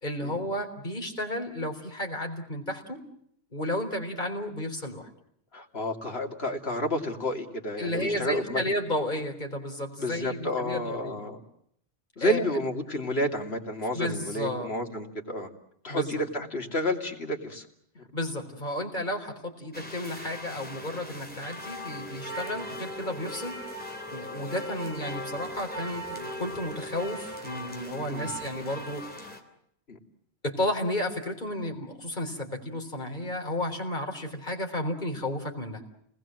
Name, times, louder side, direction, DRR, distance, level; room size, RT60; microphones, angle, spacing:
voice 1, 0.0-3.0 3.5-5.1 7.8-11.2 12.2-12.5 13.9-14.7 15.9-16.2 18.1-23.6 24.1-29.3 30.4-35.8, left 1 dB, 45° left, 2 dB, 4.2 m, -32 dB
voice 2, 5.5-8.6 10.0-11.4 12.2-15.5 15.8-17.7 17.9-18.0 22.5-22.6 28.1-28.3 29.9-30.0, equal, 70° left, 2 dB, 3.1 m, -30 dB
sound 1, 19.7-29.4, equal, 10° left, 3.3 m, -39 dB
29.5 x 20.5 x 7.7 m, 0.71 s
omnidirectional pair, 1.1 m